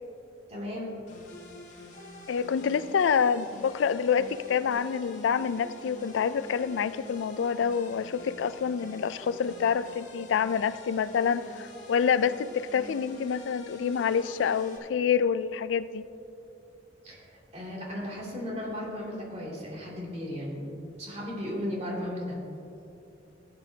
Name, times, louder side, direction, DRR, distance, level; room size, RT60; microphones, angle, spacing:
voice 1, 0.5-0.9 17.0-20.7 21.0-22.4, left 1 dB, 35° right, -4 dB, 2.6 m, -35 dB
sound 1, 1.1-14.8, left 1 dB, 40° left, 1.9 m, -47 dB
voice 2, 2.3-16.0, left 7 dB, 90° left, 15 dB, 0.3 m, -27 dB
16.5 x 9.7 x 2.8 m, 2.7 s
head